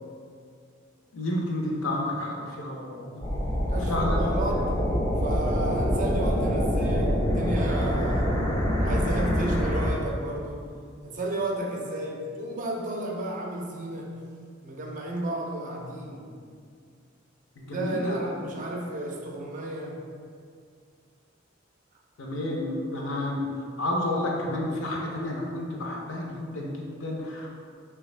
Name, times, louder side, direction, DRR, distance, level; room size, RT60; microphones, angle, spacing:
voice 1, 1.1-3.2 3.9-4.3 17.6-18.4 22.2-27.5, left 1 dB, 75° left, -1 dB, 0.6 m, -31 dB
sound 1, 3.2-9.9, equal, 20° left, 0.5 m, -25 dB
voice 2, 3.7-4.7 5.2-8.4 8.8-10.7 11.0-14.3 14.6-16.3 17.6-20.0, right 1 dB, 40° right, 0 dB, 0.4 m, -33 dB
3.3 x 2.3 x 3.1 m, 2.2 s
head